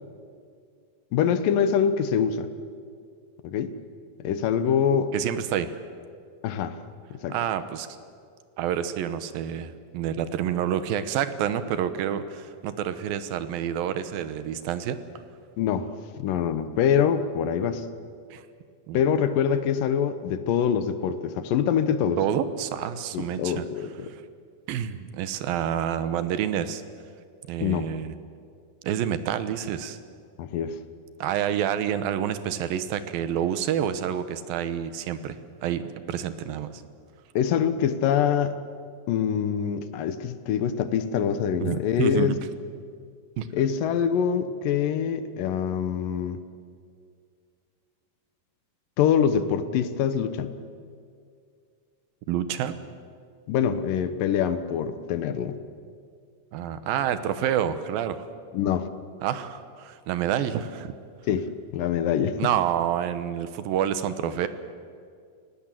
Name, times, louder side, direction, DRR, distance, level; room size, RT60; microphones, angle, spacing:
voice 1, 1.1-2.5 3.4-3.7 4.2-5.1 6.4-6.8 7.1-7.4 15.6-15.9 16.2-17.9 18.9-22.2 23.1-24.1 27.6-27.9 30.4-30.8 37.4-38.6 39.1-42.4 43.5-46.4 49.0-50.5 53.5-55.6 58.5-58.9 61.3-62.4, left 8 dB, 75° left, 11 dB, 2.5 m, -24 dB
voice 2, 5.1-5.7 7.3-7.9 8.6-15.0 18.3-18.4 18.9-19.0 22.2-23.6 24.1-24.2 24.7-26.8 27.5-28.1 28.8-30.0 31.2-35.8 36.1-36.8 41.6-42.4 43.4-43.5 52.3-52.8 56.5-58.3 59.2-60.9 62.4-64.5, right 9 dB, 80° right, 12 dB, 2.8 m, -28 dB
29.5 x 17.5 x 7.6 m, 2.2 s
omnidirectional pair, 4.2 m